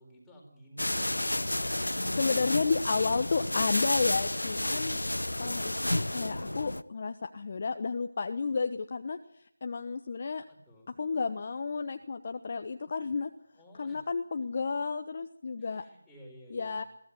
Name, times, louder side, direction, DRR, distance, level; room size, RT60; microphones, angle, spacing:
voice 1, 0.0-1.5 10.5-10.9 13.6-14.1 15.6-16.8, equal, 5° left, -3 dB, 4.5 m, -53 dB
sound 1, 0.8-6.8, left 1 dB, 70° left, 1.1 m, -31 dB
voice 2, 1.9-5.0 5.4-10.4 11.0-13.3 13.8-15.8 16.5-16.8, left 4 dB, 30° left, 7 dB, 1.1 m, -32 dB
23.0 x 16.0 x 9.5 m, 0.73 s
figure-of-eight pair, 165°, 0 cm